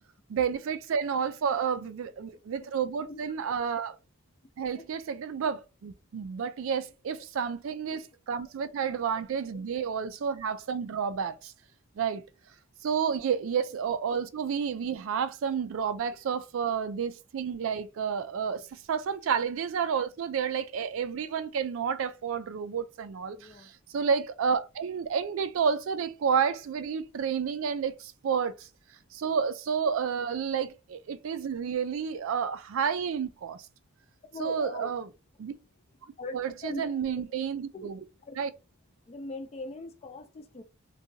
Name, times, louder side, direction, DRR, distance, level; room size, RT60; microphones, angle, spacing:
voice 1, 0.3-4.0 4.6-11.5 12.0-12.2 12.8-28.7 29.1-33.6 34.4-35.1 35.4-35.5 36.3-38.0 38.4-38.5, right 6 dB, 60° right, 0.3 m, -30 dB
voice 2, 23.3-23.7 34.3-34.9 36.2-36.9 37.3-37.4 37.7-37.9 38.3-38.4 39.1-40.6, left 2 dB, 30° left, 0.3 m, -41 dB
2.7 x 2.2 x 2.6 m
head